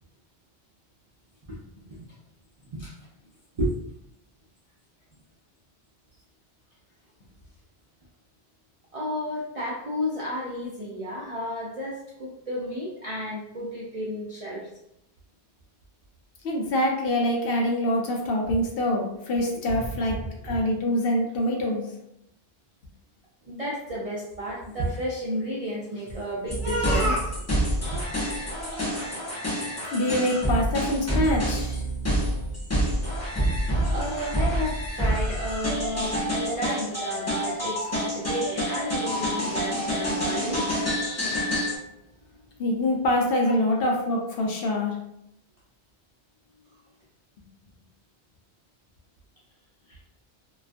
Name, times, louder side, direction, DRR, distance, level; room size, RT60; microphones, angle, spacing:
voice 1, 8.9-14.7 19.7-20.6 23.4-27.4 27.9-28.0 33.8-40.8 43.4-43.6 49.9-50.0, equal, 55° right, -6 dB, 0.4 m, -32 dB
voice 2, 16.4-20.2 20.4-21.8 29.9-31.8 42.6-45.0, left 1 dB, 65° left, 0 dB, 0.7 m, -25 dB
sound 1, 26.5-41.8, equal, 20° left, 0.5 m, -27 dB
2.3 x 2.3 x 2.4 m, 0.81 s
omnidirectional pair, 1.1 m